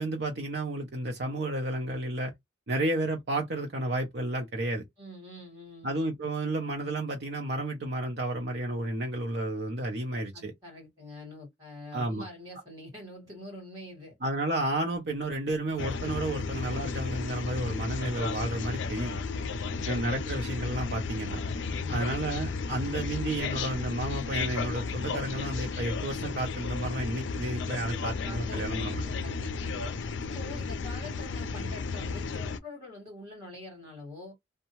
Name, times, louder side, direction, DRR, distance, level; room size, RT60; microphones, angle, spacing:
voice 1, 0.0-2.3 2.7-4.8 5.8-10.5 11.9-12.2 14.2-19.2 19.8-21.4 21.9-29.0, right 1 dB, 60° right, 0.6 m, -31 dB
voice 2, 5.0-5.9 10.3-14.2 19.2-20.6 21.6-22.0 28.2-29.7 30.0-34.3, left 1 dB, 20° right, 1.7 m, -45 dB
sound 1, 15.8-32.6, left 4 dB, 80° left, 0.4 m, -34 dB
2.7 x 2.2 x 2.9 m
head